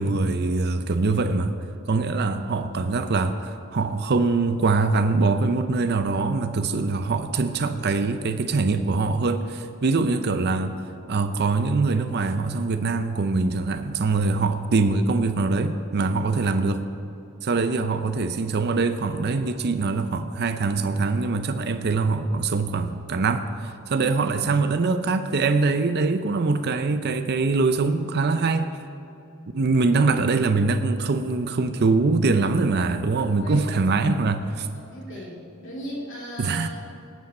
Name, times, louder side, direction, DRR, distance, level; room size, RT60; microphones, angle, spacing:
voice 1, 0.0-1.5 1.9-10.7 11.1-16.9 17.4-28.7 29.5-34.7 36.4-36.7, right 3 dB, 50° right, 9 dB, 0.5 m, -23 dB
voice 2, 17.5-18.2 23.9-24.5 29.6-29.9 33.0-33.7 34.7-36.7, equal, 60° left, -5 dB, 3.2 m, -38 dB
18.5 x 8.3 x 4.3 m, 2.7 s
head